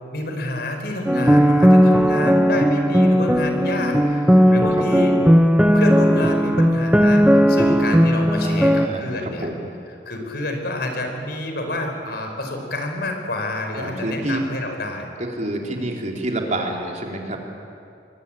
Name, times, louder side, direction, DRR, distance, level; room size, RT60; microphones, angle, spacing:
voice 1, 0.1-5.2 5.7-9.5 10.0-15.1, left 2 dB, 65° left, 3 dB, 5.0 m, -28 dB
sound 1, 1.1-8.9, equal, 5° right, 0.9 m, -16 dB
voice 2, 4.4-5.2 8.4-9.7 13.7-14.4 15.2-17.4, right 1 dB, 45° right, 1 dB, 3.7 m, -28 dB
26.0 x 22.5 x 9.1 m, 2.5 s
head